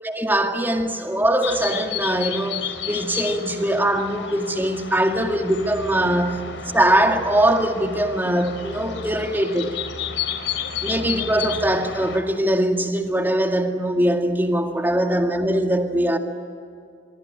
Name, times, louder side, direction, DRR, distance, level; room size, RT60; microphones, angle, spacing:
voice 1, 0.0-6.5 6.7-9.8 10.8-16.2, right 1 dB, 10° right, 2.1 m, -21 dB
sound 1, 1.4-12.2, left 7 dB, 80° left, 3.6 m, -32 dB
25.0 x 24.5 x 8.7 m
head